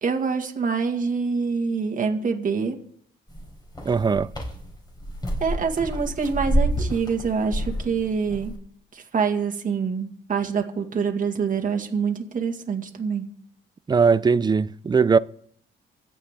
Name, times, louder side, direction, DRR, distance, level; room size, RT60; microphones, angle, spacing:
voice 1, 0.0-2.8 5.4-8.5 8.9-13.3, right 5 dB, 40° right, 2.0 m, -25 dB
sound 1, 3.3-8.5, right 1 dB, 20° left, 4.1 m, -28 dB
voice 2, 3.8-4.3 13.9-15.2, right 5 dB, 20° right, 0.4 m, -19 dB
25.0 x 8.4 x 3.7 m
cardioid pair, 90°, 20 cm